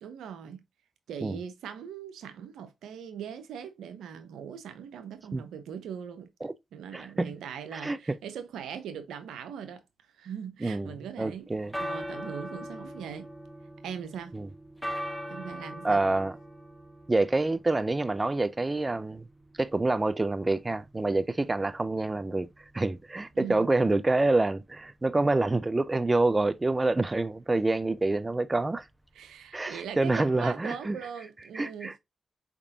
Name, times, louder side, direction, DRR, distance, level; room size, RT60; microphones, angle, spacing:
voice 1, 0.0-0.6 1.1-6.3 6.7-9.8 10.1-11.5 11.8-13.3 13.8-14.3 15.3-16.0 23.3-23.7 29.1-31.9, right 8 dB, 90° right, 0.7 m, -40 dB
voice 2, 6.9-7.4 7.7-8.2 10.6-11.7 14.3-14.5 15.8-16.4 17.1-19.3 19.6-28.9 29.5-31.0 31.5-32.0, right 2 dB, 25° right, 0.4 m, -27 dB
sound 1, 11.4-30.4, equal, 5° left, 1.2 m, -43 dB
4.7 x 3.6 x 2.8 m
supercardioid pair, 50°, 0 cm